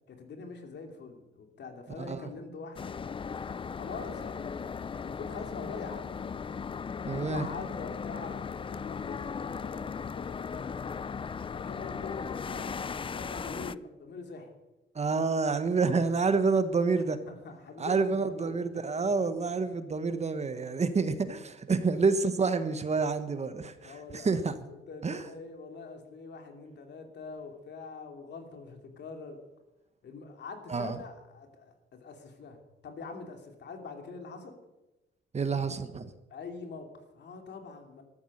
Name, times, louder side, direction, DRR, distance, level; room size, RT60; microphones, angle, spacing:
voice 1, 0.1-3.0 3.6-4.7 5.0-6.6 7.0-11.0 11.5-14.6 17.0-19.1 23.8-24.3 24.9-29.4 30.0-34.6 36.3-38.0, left 4 dB, 60° left, 4 dB, 3.1 m, -44 dB
voice 2, 2.0-2.3 7.1-7.5 14.9-17.2 17.8-24.5 25.0-25.2 30.7-31.0 35.3-36.1, right 4 dB, 35° right, 11 dB, 1.3 m, -28 dB
sound 1, 2.8-13.8, left 6 dB, 25° left, 0.4 m, -37 dB
14.0 x 12.5 x 6.6 m, 1.0 s
cardioid pair, 90°, 20 cm